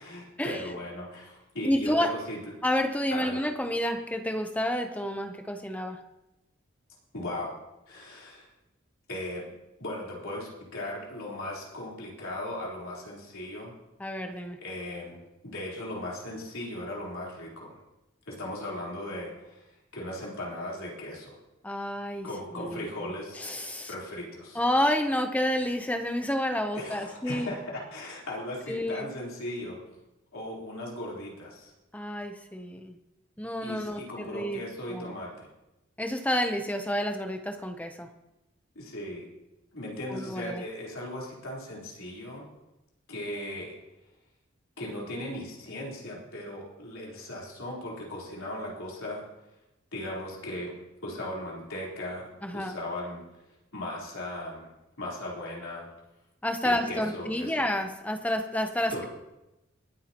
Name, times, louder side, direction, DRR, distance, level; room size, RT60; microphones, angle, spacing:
voice 1, 0.0-2.4 3.1-3.4 7.1-7.5 7.9-8.5 9.1-9.4 9.8-13.7 14.6-17.8 18.3-21.4 22.2-23.5 23.9-24.6 26.7-29.8 30.3-31.7 33.6-35.5 38.7-39.3 39.7-42.5 43.1-43.8 44.8-49.3 49.9-50.7 51.0-53.2 53.7-54.7 55.0-55.9 56.6-57.7 58.9-59.1, left 1 dB, 90° left, -4 dB, 3.8 m, -37 dB
voice 2, 1.6-2.1 2.6-6.0 14.0-14.6 21.6-22.3 22.5-23.9 24.5-27.5 28.7-29.1 31.9-33.0 33.4-34.6 34.9-35.1 36.0-38.1 40.1-40.6 52.4-52.7 56.4-59.1, left 1 dB, 5° left, 6 dB, 0.7 m, -29 dB
22.0 x 9.3 x 2.9 m, 0.96 s
head